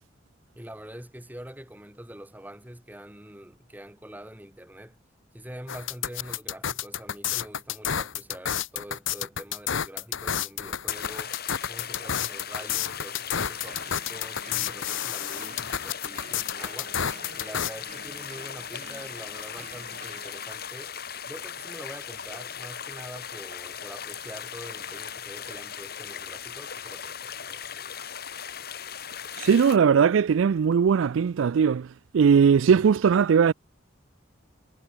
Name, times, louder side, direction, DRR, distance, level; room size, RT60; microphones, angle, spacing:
voice 1, 0.6-5.0 5.3-11.4 11.7-21.0 21.3-27.7, right 1 dB, 10° right, 2.6 m, -45 dB
sound 1, 5.7-17.7, left 9 dB, 75° left, 1.0 m, -30 dB
sound 2, 10.9-29.8, left 8 dB, 50° left, 3.9 m, -38 dB
sound 3, 13.6-20.4, right 4 dB, 40° right, 7.1 m, -49 dB
voice 2, 29.4-31.9 32.1-33.5, right 6 dB, 80° right, 0.4 m, -19 dB
head